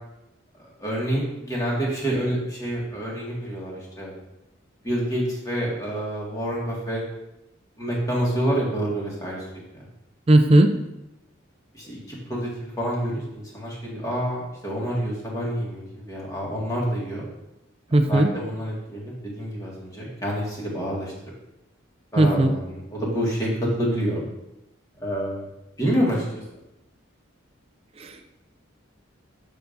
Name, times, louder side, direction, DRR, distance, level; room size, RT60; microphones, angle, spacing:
voice 1, 0.8-4.1 4.8-7.0 7.8-9.4 9.7-9.8 11.7-17.2 18.1-21.1 22.1-23.5 23.8-24.2 25.0-25.5 25.8-26.3, equal, 20° left, -4 dB, 1.8 m, -27 dB
voice 2, 10.3-10.7 17.9-18.3 22.2-22.5 28.0-28.1, right 1 dB, 30° right, 7 dB, 0.4 m, -17 dB
6.8 x 6.8 x 2.6 m, 0.90 s
head